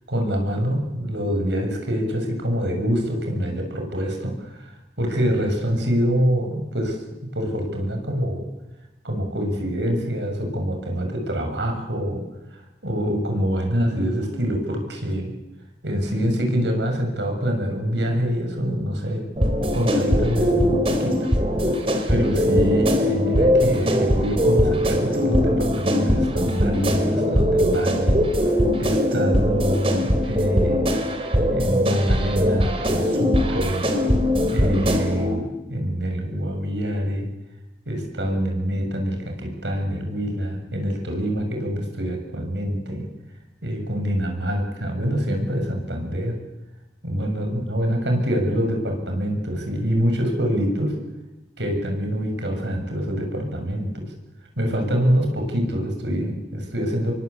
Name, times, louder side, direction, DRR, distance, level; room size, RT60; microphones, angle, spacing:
voice 1, 0.1-7.0 7.3-8.5 9.0-12.2 12.5-15.3 15.8-19.4 19.7-21.3 21.7-21.8 22.1-28.2 28.4-30.9 31.5-33.9 34.5-37.3 37.8-43.1 43.6-46.4 47.0-51.0 51.6-54.1 54.6-57.1, equal, 80° right, 3 dB, 7.0 m, -25 dB
sound 1, 19.4-35.4, equal, 30° right, 3.3 m, -21 dB
27.5 x 23.0 x 8.4 m, 1.0 s
head